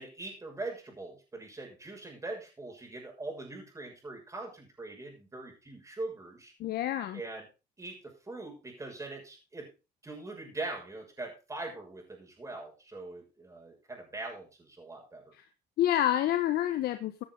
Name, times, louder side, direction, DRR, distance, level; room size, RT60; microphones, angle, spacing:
voice 1, 0.0-6.5 7.1-7.5 7.8-9.7 10.0-15.3, right 2 dB, 20° right, 1 dB, 6.6 m, -42 dB
voice 2, 6.6-7.2 15.3-15.4 15.8-17.2, left 12 dB, 70° left, 8 dB, 1.3 m, -28 dB
16.0 x 9.9 x 3.9 m, 0.30 s
cardioid pair, 110°, 17 cm